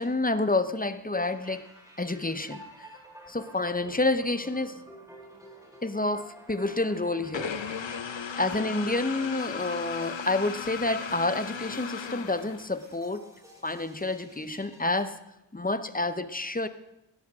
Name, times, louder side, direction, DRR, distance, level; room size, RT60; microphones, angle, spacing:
voice 1, 0.0-1.6 2.0-2.9 3.3-4.8 5.8-7.5 8.4-13.3 13.6-15.2 15.5-16.7, left 2 dB, 20° left, 11 dB, 0.7 m, -29 dB
sound 1, 1.2-15.0, right 1 dB, 5° right, 3.5 m, -51 dB
sound 2, 7.3-12.9, left 6 dB, 85° left, 0.8 m, -36 dB
17.0 x 12.5 x 3.7 m, 0.90 s
wide cardioid pair, 60°, 44 cm